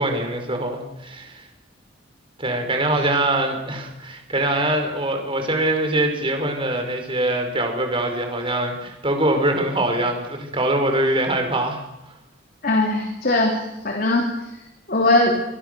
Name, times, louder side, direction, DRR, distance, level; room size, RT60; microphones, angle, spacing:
voice 1, 0.0-1.4 2.4-11.8, right 1 dB, 25° right, 4 dB, 5.3 m, -23 dB
voice 2, 12.6-14.3 14.9-15.3, left 2 dB, 50° left, 2 dB, 3.2 m, -20 dB
27.0 x 26.0 x 7.0 m, 0.92 s
head